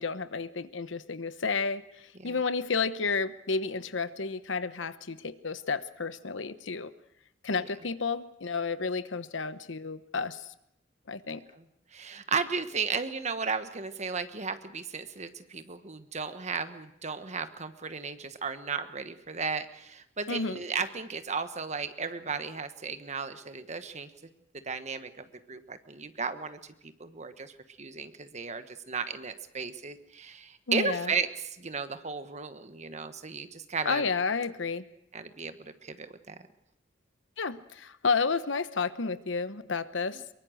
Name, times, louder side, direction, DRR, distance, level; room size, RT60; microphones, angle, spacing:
voice 1, 0.0-1.8 2.2-6.9 7.4-10.4 11.1-11.4 20.3-20.6 30.7-31.1 33.8-34.8 37.4-40.2, left 4 dB, 75° left, 13 dB, 1.0 m, -31 dB
voice 2, 11.9-24.3 24.6-34.1 35.1-36.4 40.1-40.2, right 5 dB, 35° right, 10 dB, 1.3 m, -35 dB
23.5 x 22.5 x 6.4 m, 0.77 s
head